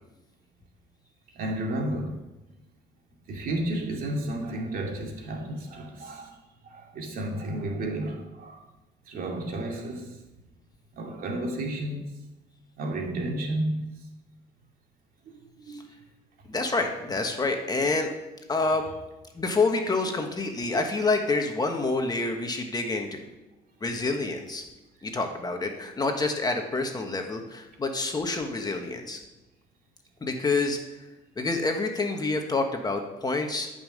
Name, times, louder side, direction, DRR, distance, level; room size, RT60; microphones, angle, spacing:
voice 1, 1.3-2.2 3.3-8.6 9.1-10.2 10.9-12.0 12.8-13.9 15.2-15.8, right 1 dB, 60° right, 2.5 m, -32 dB
voice 2, 16.5-18.1 18.5-18.9 19.3-23.2 23.8-24.6 25.0-29.2 30.2-30.8 31.4-33.7, left 3 dB, 25° left, 1.4 m, -27 dB
13.0 x 5.6 x 6.6 m
cardioid pair, 110°, 17 cm